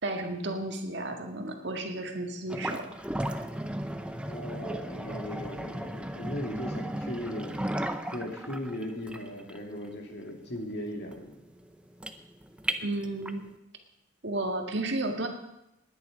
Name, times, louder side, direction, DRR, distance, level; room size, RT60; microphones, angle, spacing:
voice 1, 0.0-2.9 12.8-13.5 14.2-15.3, right 2 dB, 60° right, 4 dB, 2.0 m, -33 dB
sound 1, 2.5-13.5, right 1 dB, 5° right, 0.7 m, -36 dB
voice 2, 4.2-7.9 8.1-11.4, left 1 dB, 55° left, 2 dB, 2.5 m, -38 dB
19.0 x 10.0 x 5.2 m, 0.87 s
head